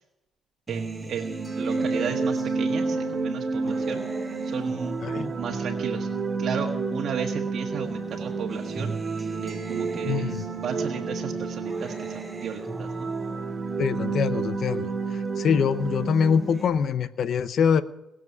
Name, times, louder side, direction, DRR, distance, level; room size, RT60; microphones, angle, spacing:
Acoustic guitar, 0.7-7.3 7.7-15.3 15.7-16.7, right 2 dB, 20° right, 4.9 m, -40 dB
voice 1, 0.7-4.0 4.4-6.1 6.4-8.9 9.4-10.4 10.6-13.1, right 6 dB, 65° right, 1 dB, 1.5 m, -34 dB
sound 1, 1.2-16.9, right 4 dB, 40° right, 2.1 m, -30 dB
voice 2, 5.0-5.3 10.1-10.4 13.8-14.9 15.4-17.8, left 7 dB, 60° left, 13 dB, 0.8 m, -24 dB
20.0 x 7.5 x 9.6 m, 0.89 s
cardioid pair, 90°, 0 cm